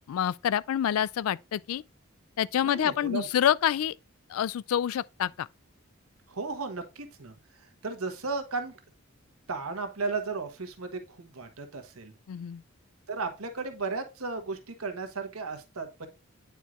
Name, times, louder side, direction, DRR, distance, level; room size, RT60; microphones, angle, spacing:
voice 1, 0.1-1.8 2.4-4.0 4.3-5.5 12.3-12.6, left 10 dB, 80° left, 0.3 m, -27 dB
voice 2, 2.6-3.3 6.3-8.8 9.5-12.1 13.1-16.1, right 4 dB, 85° right, 1.2 m, -35 dB
9.1 x 4.6 x 2.4 m
head